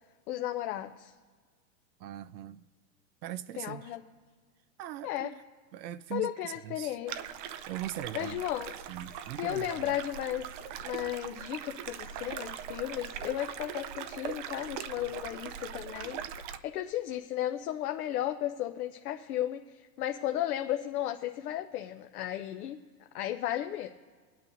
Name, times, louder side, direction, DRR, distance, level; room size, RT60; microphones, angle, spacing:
voice 1, 0.3-1.1 3.5-4.0 5.0-5.3 6.1-7.1 8.1-8.7 9.4-10.5 10.8-16.2 16.6-22.8 23.1-23.9, left 12 dB, 65° left, 0.7 m, -34 dB
voice 2, 2.0-2.7 3.2-4.0 4.8-5.4 5.7-7.0 7.7-8.4 8.9-10.0, right 12 dB, 85° right, 0.6 m, -40 dB
sound 1, 7.1-16.6, right 9 dB, 35° right, 0.5 m, -41 dB
22.5 x 8.8 x 2.6 m
hypercardioid pair, 120°, 50 cm